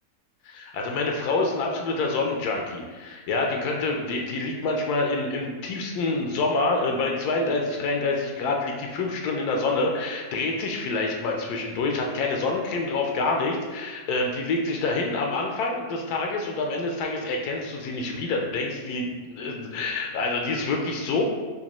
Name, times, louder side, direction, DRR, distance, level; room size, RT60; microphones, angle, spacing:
voice 1, 0.4-21.2, left 3 dB, 80° left, 1 dB, 1.1 m, -27 dB
5.0 x 2.2 x 2.9 m, 1.3 s
omnidirectional pair, 1.6 m